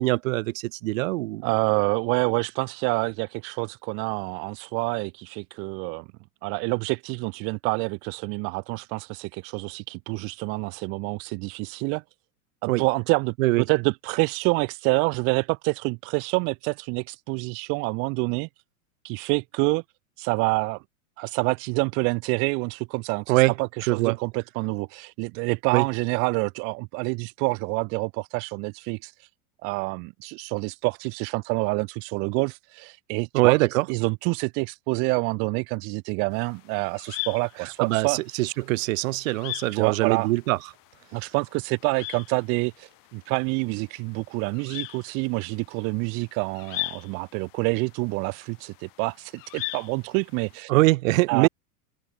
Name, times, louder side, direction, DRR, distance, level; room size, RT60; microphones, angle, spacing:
voice 1, 0.0-1.5 12.7-12.8 13.4-13.6 23.3-23.5 23.8-24.2 25.7-25.8 33.3-33.8 37.6-40.6 50.7-51.5, right 21 dB, 60° right, 1.4 m, -23 dB
voice 2, 1.4-6.1 6.4-12.0 12.6-13.3 13.7-18.5 19.0-19.8 20.2-20.8 21.2-29.1 29.6-33.6 33.9-38.2 39.7-40.3 41.1-50.7 51.3-51.5, right 30 dB, 30° right, 0.4 m, -27 dB
sound 1, 36.3-50.6, left 24 dB, 45° left, 4.8 m, -41 dB
open air
hypercardioid pair, 120°, 44 cm